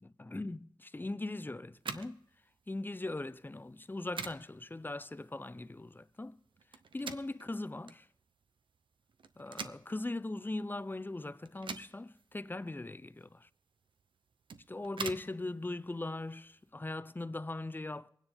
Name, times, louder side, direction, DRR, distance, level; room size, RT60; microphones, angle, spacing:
voice 1, 0.0-2.2 2.7-6.4 6.9-8.1 9.4-13.5 14.7-18.1, left 2 dB, 25° left, 0.5 m, -40 dB
sound 1, 1.7-16.7, right 5 dB, 85° right, 0.7 m, -48 dB
23.0 x 9.7 x 3.5 m
cardioid pair, 50°, 8 cm